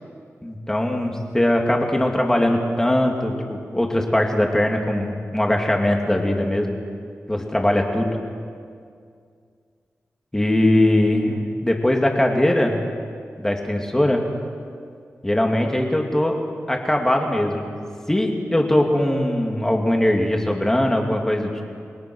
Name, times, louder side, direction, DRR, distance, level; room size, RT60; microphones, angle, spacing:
voice 1, 0.4-6.7 7.3-8.2 10.3-12.8 13.4-14.2 15.2-16.4 16.7-17.7 18.1-21.6, left 1 dB, 10° left, 1 dB, 2.5 m, -21 dB
29.5 x 22.0 x 6.3 m, 2.2 s
wide cardioid pair, 175°, 5 cm